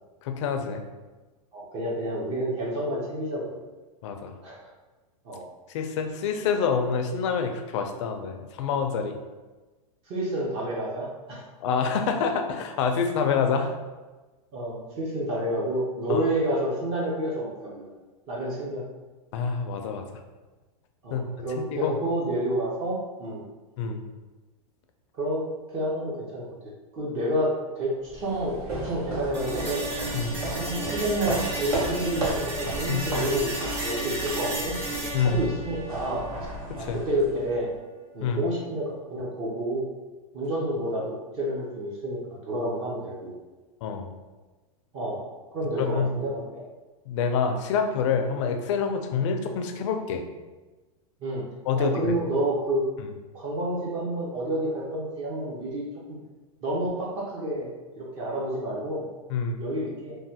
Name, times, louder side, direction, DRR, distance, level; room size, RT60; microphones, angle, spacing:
voice 1, 0.2-0.8 4.0-4.3 5.7-9.2 11.6-13.7 16.1-16.2 19.3-20.1 21.1-22.0 23.8-24.0 30.1-30.4 32.8-33.3 35.1-35.4 36.7-37.0 38.2-38.4 43.8-44.1 45.8-46.1 47.1-50.2 51.7-52.2 53.0-53.1 59.3-59.5, left 6 dB, 50° left, 5 dB, 0.4 m, -27 dB
voice 2, 1.5-3.6 4.4-4.7 5.2-5.4 10.1-11.4 14.5-17.9 18.3-18.8 21.0-23.4 25.2-26.4 26.9-33.5 33.8-34.8 35.2-36.3 36.9-37.7 38.1-39.8 40.3-42.2 42.5-43.3 44.9-45.3 45.5-46.6 51.2-51.4 51.8-52.8 53.3-56.2 56.6-57.7 58.0-59.0 59.6-60.2, right 1 dB, 30° right, -4 dB, 0.6 m, -29 dB
sound 1, 28.1-37.7, right 2 dB, 80° right, 1.1 m, -34 dB
sound 2, 29.3-37.3, right 1 dB, 50° right, 1.1 m, -34 dB
3.1 x 2.1 x 2.7 m, 1.2 s
supercardioid pair, 145°, 19 cm